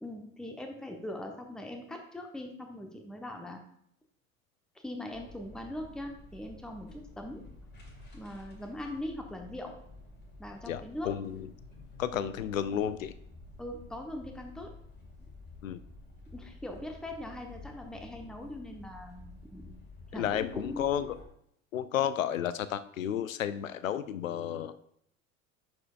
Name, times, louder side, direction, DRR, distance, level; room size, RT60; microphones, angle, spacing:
voice 1, 0.0-3.6 4.7-7.4 8.1-9.7 10.4-11.1 13.6-14.7 16.3-19.7 20.1-21.0, left 1 dB, ahead, 3 dB, 0.9 m, -41 dB
sound 1, 5.1-21.3, left 2 dB, 25° left, 1.9 m, -51 dB
voice 2, 10.7-11.5 12.0-13.1 15.6-15.8 20.2-21.2 21.7-24.8, left 10 dB, 70° left, 14 dB, 0.6 m, -32 dB
10.5 x 4.5 x 2.4 m, 0.70 s
figure-of-eight pair, 70°, 41 cm